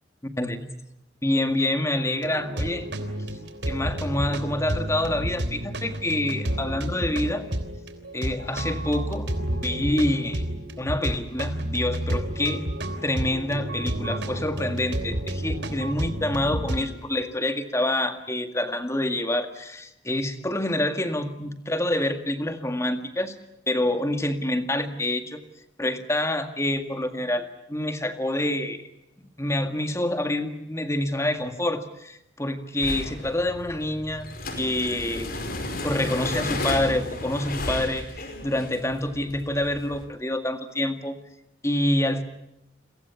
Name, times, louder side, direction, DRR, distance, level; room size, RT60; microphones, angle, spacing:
voice 1, 1.2-2.9 3.6-7.4 8.1-10.4 10.8-12.6 13.0-23.4 23.7-25.4 25.8-28.8 29.4-34.3 34.6-35.3 35.8-41.2 41.6-42.2, left 1 dB, 15° left, 8 dB, 1.9 m, -27 dB
sound 1, 2.1-16.9, right 1 dB, 70° right, 3.4 m, -31 dB
sound 2, 32.8-40.0, left 2 dB, 50° left, 4.7 m, -33 dB
29.5 x 23.0 x 7.1 m, 0.83 s
head